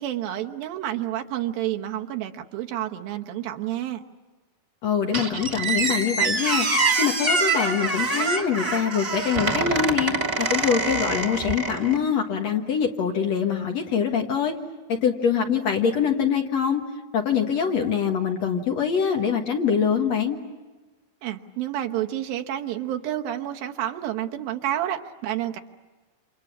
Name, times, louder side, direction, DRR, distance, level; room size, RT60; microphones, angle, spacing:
voice 1, 0.0-4.0 21.2-25.6, right 12 dB, 75° right, 4 dB, 2.9 m, -29 dB
voice 2, 4.8-6.7 7.0-14.5 14.9-16.8 17.1-20.4, left 7 dB, 55° left, 3 dB, 2.1 m, -24 dB
Squeak, 5.1-12.0, right 3 dB, 20° right, 1.7 m, -25 dB
29.0 x 27.5 x 7.2 m, 1.3 s
omnidirectional pair, 4.3 m